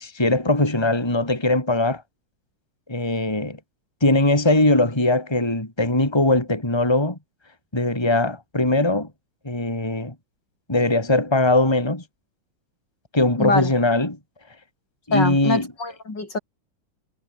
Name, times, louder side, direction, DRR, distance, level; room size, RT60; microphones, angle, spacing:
voice 1, 0.0-2.0 2.9-3.6 4.0-7.2 7.7-9.1 9.4-10.1 10.7-12.0 13.1-14.2 15.1-15.7, left 2 dB, 10° left, 3.7 m, -20 dB
voice 2, 13.4-13.7 15.1-16.4, left 3 dB, 50° left, 5.5 m, -24 dB
omnidirectional pair, 2.4 m